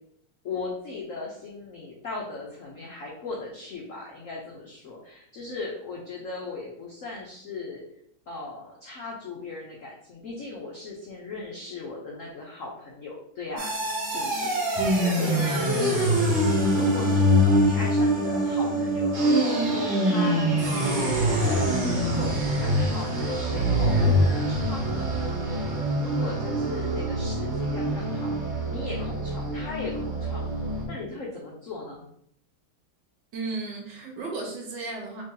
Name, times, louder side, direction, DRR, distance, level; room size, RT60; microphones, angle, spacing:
voice 1, 0.4-7.8 8.3-16.2 16.7-20.5 21.3-25.1 26.0-28.3 28.7-30.5 30.9-32.0, left 3 dB, 75° left, -3 dB, 0.7 m, -38 dB
sound 1, 13.6-30.9, equal, 40° right, 1.1 m, -24 dB
voice 2, 33.3-35.2, right 3 dB, 65° right, 0 dB, 1.4 m, -34 dB
3.4 x 2.7 x 3.7 m, 0.69 s
omnidirectional pair, 2.3 m